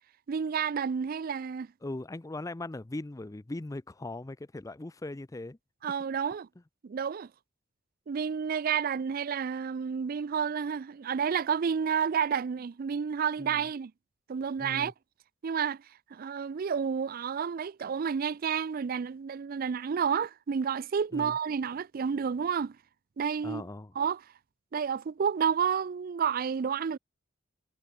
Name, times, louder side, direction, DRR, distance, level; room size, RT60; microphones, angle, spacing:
voice 1, 0.3-1.7 5.8-6.5 6.8-7.3 8.1-13.9 14.3-14.9 15.4-15.8 16.1-22.8 23.2-23.6 24.0-24.2 24.7-27.0, right 7 dB, 45° right, 0.4 m, -30 dB
voice 2, 1.8-5.6 13.4-13.6 14.6-14.9 21.1-21.4 23.4-23.9, left 2 dB, 15° left, 0.5 m, -39 dB
head